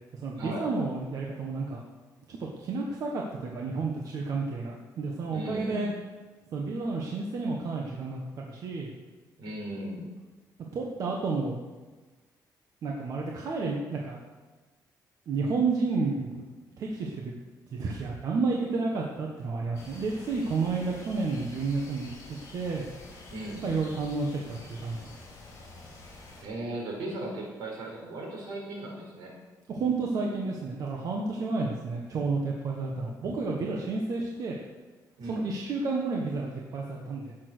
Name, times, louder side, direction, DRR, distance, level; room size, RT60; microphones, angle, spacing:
voice 1, 0.1-1.8 2.3-5.9 6.5-8.9 10.7-11.6 12.8-14.2 15.3-16.3 16.8-17.3 17.7-22.8 23.6-25.0 29.7-34.6 35.2-37.3, right 3 dB, 50° right, -1 dB, 1.5 m, -31 dB
voice 2, 5.3-5.9 9.4-10.0 23.3-23.7 26.4-29.3 35.2-35.4, right 1 dB, 80° right, -1 dB, 4.9 m, -37 dB
sound 1, 19.7-26.4, left 2 dB, 45° left, 4.4 m, -48 dB
16.5 x 7.5 x 6.3 m, 1.3 s
cardioid pair, 165°, 7 cm